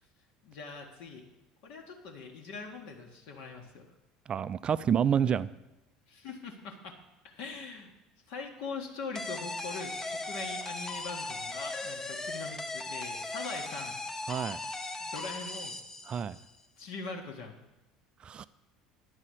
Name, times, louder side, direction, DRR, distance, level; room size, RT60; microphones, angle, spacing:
voice 1, 0.4-1.3 1.6-3.9 6.1-7.0 7.2-7.9 8.3-14.0 15.0-15.8 16.8-17.6, left 4 dB, 60° left, 2 dB, 1.5 m, -42 dB
voice 2, 4.3-5.5 14.3-14.6 16.1-16.4 18.2-18.5, right 8 dB, 35° right, 16 dB, 0.4 m, -28 dB
sound 1, 9.2-16.5, left 2 dB, 15° left, 0.7 m, -38 dB
9.7 x 5.6 x 8.1 m, 0.96 s
figure-of-eight pair, 65°, 3 cm